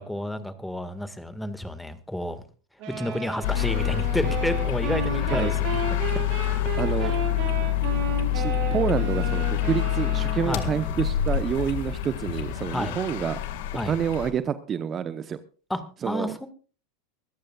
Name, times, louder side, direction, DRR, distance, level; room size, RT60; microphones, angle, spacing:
voice 1, 0.0-2.4 3.0-5.5 7.0-7.2 10.4-10.7 12.7-13.0 13.7-14.0 15.7-16.5, left 1 dB, 5° left, 11 dB, 1.8 m, -30 dB
sound 1, 2.8-11.2, right 6 dB, 55° right, 6.2 m, -34 dB
sound 2, 3.4-14.3, left 12 dB, 65° left, 1.9 m, -27 dB
voice 2, 6.8-7.2 8.3-13.4 13.9-15.4 16.0-16.3, right 8 dB, 30° right, 12 dB, 0.9 m, -28 dB
24.5 x 14.0 x 2.4 m, 0.37 s
hypercardioid pair, 90°, 0 cm